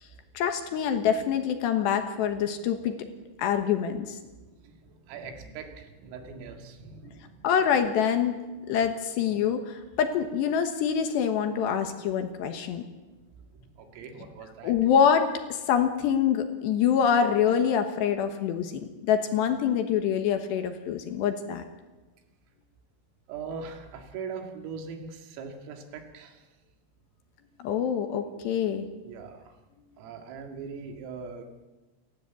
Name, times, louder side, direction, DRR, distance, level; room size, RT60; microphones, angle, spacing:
voice 1, 0.3-3.0 3.4-4.2 7.4-8.3 8.7-12.8 14.6-18.7 19.0-21.6 27.6-28.9, left 8 dB, 70° left, 6 dB, 3.1 m, -25 dB
voice 2, 4.4-7.5 8.6-8.7 13.5-14.7 23.3-26.5 29.0-29.6 30.0-31.5, right 5 dB, 90° right, 5 dB, 4.7 m, -41 dB
28.5 x 13.0 x 8.3 m, 1.2 s
omnidirectional pair, 5.8 m